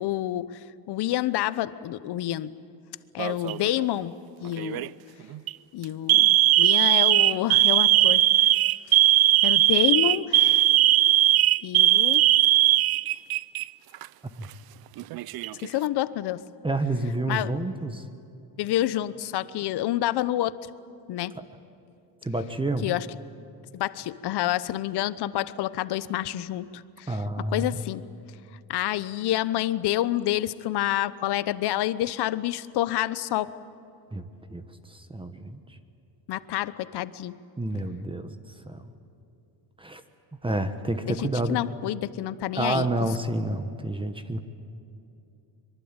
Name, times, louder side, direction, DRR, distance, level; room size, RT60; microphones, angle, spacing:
voice 1, 0.0-2.6 3.1-4.9 5.7-8.2 8.9-9.0 9.4-10.7 11.6-12.2 15.6-16.4 17.3-17.5 18.6-20.5 21.1-21.4 22.8-23.1 23.7-28.0 28.7-33.5 36.3-37.4 41.1-42.9, left 14 dB, 65° left, 15 dB, 1.0 m, -28 dB
Alarm, 3.2-3.7 4.6-4.9 5.3-5.5 6.1-13.6 13.9-14.1 15.0-15.7, right 15 dB, 55° right, 0.6 m, -19 dB
voice 2, 16.6-18.1 21.3-21.4 22.2-22.9 27.1-27.8 34.1-35.8 37.6-38.3 38.6-38.9 39.8-40.0 40.4-41.6 42.5-44.4, right 2 dB, 10° right, 9 dB, 1.3 m, -29 dB
24.5 x 23.0 x 9.0 m, 2.7 s
cardioid pair, 120°, 43 cm